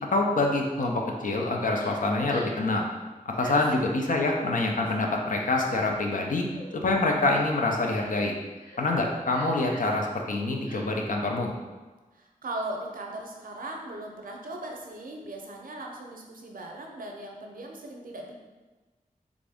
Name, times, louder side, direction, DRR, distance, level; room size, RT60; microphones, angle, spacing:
voice 1, 0.1-2.9 3.2-6.5 6.8-8.3 8.8-11.5, left 2 dB, 70° left, 0 dB, 0.5 m, -26 dB
Crying sobbing, 1.7-1.9 2.3-2.6 3.3-3.5 4.2-4.4 5.3-6.0 6.5-6.7 7.3-7.5 7.9-8.2 8.6-8.8 9.3-9.9 10.6-10.8, equal, 85° left, 1.4 m, -47 dB
voice 2, 12.1-18.3, right 1 dB, 80° right, 1 dB, 0.5 m, -38 dB
3.5 x 2.6 x 3.4 m, 1.2 s
wide cardioid pair, 75°, 14 cm